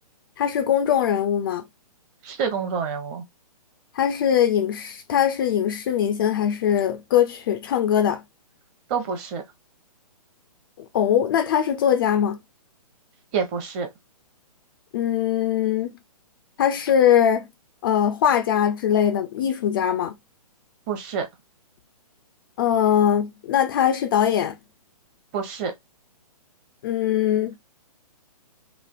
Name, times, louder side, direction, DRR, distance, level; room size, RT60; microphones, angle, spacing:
voice 1, 0.4-1.6 3.9-8.2 10.8-12.4 14.9-15.9 16.6-17.5 17.8-20.1 22.6-24.6 26.8-27.5, left 9 dB, 35° left, 0.4 m, -21 dB
voice 2, 2.2-3.2 8.9-9.4 13.3-13.9 20.9-21.3 25.3-25.7, right 6 dB, 30° right, 0.8 m, -27 dB
3.3 x 2.4 x 2.4 m
hypercardioid pair, 135°, 20 cm